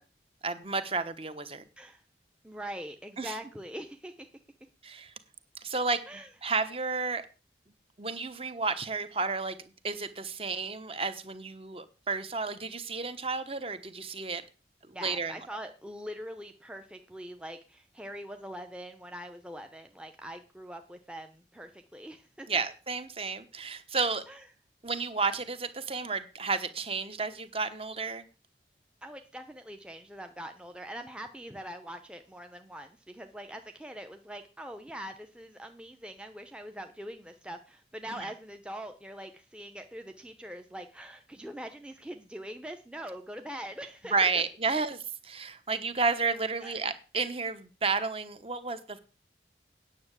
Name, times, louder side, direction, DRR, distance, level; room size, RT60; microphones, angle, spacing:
voice 1, 0.4-1.6 3.2-3.4 4.8-5.1 5.6-6.0 6.4-7.3 8.0-9.6 9.8-14.4 15.0-15.3 22.5-24.2 24.8-28.3 38.1-38.3 44.1-49.0, right 4 dB, 30° right, 11 dB, 1.1 m, -32 dB
voice 2, 2.4-4.3 6.1-6.3 14.9-22.5 24.3-24.4 29.0-44.3 46.6-46.8, equal, 5° right, 5 dB, 0.7 m, -43 dB
9.6 x 6.4 x 8.2 m, 0.33 s
head